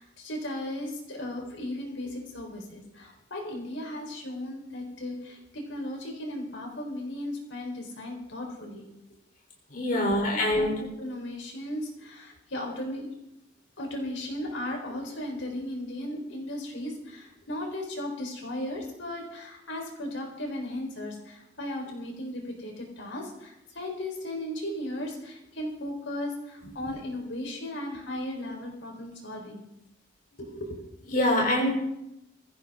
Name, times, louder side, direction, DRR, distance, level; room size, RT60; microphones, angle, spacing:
voice 1, 0.0-8.9 9.9-13.1 13.8-29.6 30.4-30.8, left 1 dB, 70° left, 1 dB, 4.2 m, -36 dB
voice 2, 9.7-10.8 26.8-26.9 31.1-31.7, left 1 dB, 45° left, -1 dB, 3.7 m, -25 dB
23.0 x 15.5 x 3.7 m, 0.84 s
head